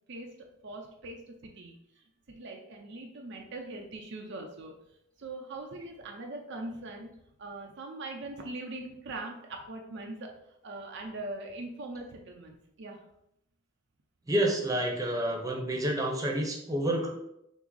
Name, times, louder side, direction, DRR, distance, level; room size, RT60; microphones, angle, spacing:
voice 1, 0.1-4.8 5.2-7.1 7.4-10.3 10.6-13.0, right 2 dB, 60° right, 2 dB, 0.6 m, -41 dB
voice 2, 14.3-17.1, right 1 dB, 15° right, 0 dB, 0.8 m, -29 dB
5.9 x 2.0 x 3.9 m, 0.78 s
head